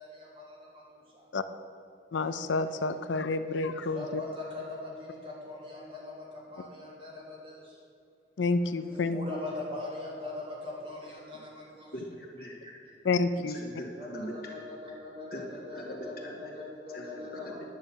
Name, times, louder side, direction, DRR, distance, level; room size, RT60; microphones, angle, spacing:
voice 1, 0.0-1.3 3.9-7.8 8.9-11.9 12.6-12.9 14.0-17.6, left 2 dB, 30° right, -5 dB, 3.2 m, -41 dB
voice 2, 2.1-4.2 8.4-9.2 13.0-13.6, left 3 dB, 85° left, 11 dB, 0.5 m, -29 dB
voice 3, 11.9-12.6 13.5-14.5 15.3-16.6 16.9-17.6, equal, 55° left, -1 dB, 2.2 m, -41 dB
10.5 x 6.5 x 8.9 m, 2.5 s
head